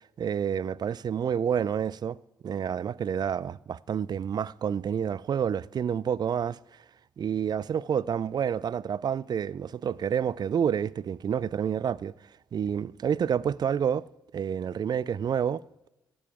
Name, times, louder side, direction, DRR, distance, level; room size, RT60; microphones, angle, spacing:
voice 1, 0.2-2.2 2.4-6.6 7.2-12.1 12.5-14.0 14.3-15.6, right 8 dB, 45° right, 0.4 m, -28 dB
16.5 x 7.0 x 3.7 m
hypercardioid pair, 40°, 10 cm